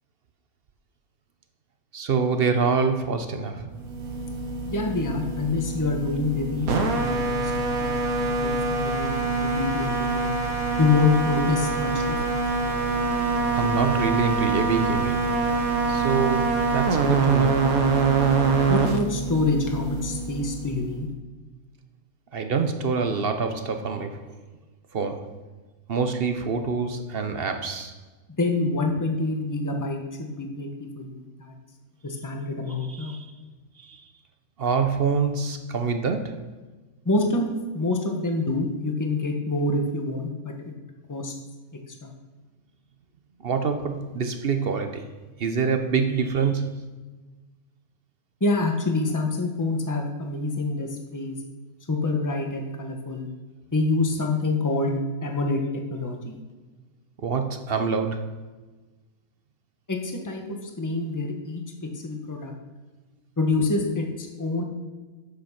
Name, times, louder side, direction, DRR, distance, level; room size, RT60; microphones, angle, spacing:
voice 1, 1.9-3.7 13.5-15.3 15.9-17.7 22.3-24.3 24.9-25.4 25.9-27.9 32.9-33.3 33.8-34.0 34.6-36.4 43.4-45.1 45.4-46.8 57.2-58.3, right 5 dB, 50° right, 7 dB, 0.8 m, -26 dB
sound 1, 3.8-21.0, right 4 dB, 80° right, 1.4 m, -25 dB
voice 2, 4.7-10.3 10.8-12.4 18.7-21.1 28.4-31.5 32.0-33.2 37.0-40.3 41.1-41.3 42.0-42.1 48.4-51.4 51.9-53.3 53.7-54.9 55.2-55.6 55.9-56.4 59.9-61.6 62.0-62.5 63.4-64.6, left 3 dB, 15° left, 2 dB, 1.1 m, -26 dB
8.7 x 7.7 x 5.8 m, 1.3 s
omnidirectional pair, 1.5 m